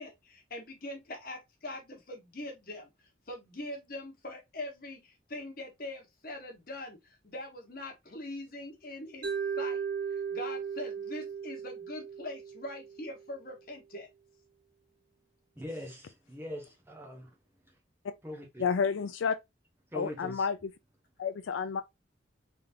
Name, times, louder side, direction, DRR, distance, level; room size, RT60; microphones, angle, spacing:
voice 1, 0.0-2.9 3.3-9.3 9.6-9.8 10.1-14.1, left 1 dB, 45° left, 1.3 m, -42 dB
Mallet percussion, 9.2-13.3, right 6 dB, 45° right, 1.2 m, -36 dB
voice 2, 15.6-17.3 18.2-18.6 19.9-20.5, left 1 dB, 10° right, 0.8 m, -42 dB
voice 3, 18.6-19.3 19.9-20.7 21.2-21.8, left 6 dB, 80° left, 0.4 m, -30 dB
3.6 x 3.6 x 2.6 m
head